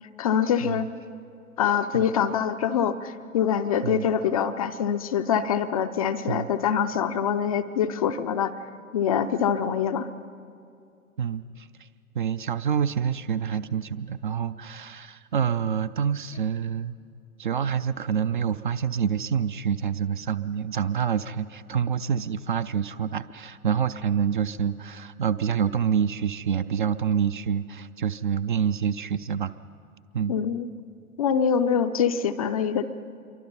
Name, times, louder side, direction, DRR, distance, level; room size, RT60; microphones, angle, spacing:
voice 1, 0.2-0.9 1.6-8.5 8.9-10.1 30.3-30.7 31.2-32.8, left 8 dB, 25° left, 9 dB, 0.4 m, -24 dB
voice 2, 11.2-11.9 12.2-16.9 17.4-29.5 30.1-30.4, right 7 dB, 35° right, 13 dB, 0.4 m, -27 dB
27.0 x 23.5 x 5.6 m, 2.5 s
figure-of-eight pair, 110°, 44 cm